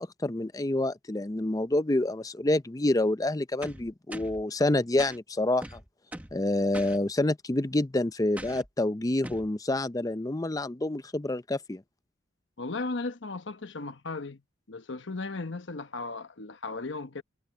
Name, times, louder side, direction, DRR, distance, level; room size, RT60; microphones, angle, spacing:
voice 1, 0.0-5.8 6.3-11.8, left 1 dB, 20° left, 0.5 m, -28 dB
sound 1, 3.6-4.4 5.0-5.2 5.6-6.4 6.7-7.0 8.4-8.7 9.2-9.5, right 1 dB, 10° right, 1.0 m, -41 dB
voice 2, 12.6-14.4 14.7-17.2, left 3 dB, 65° left, 1.1 m, -36 dB
head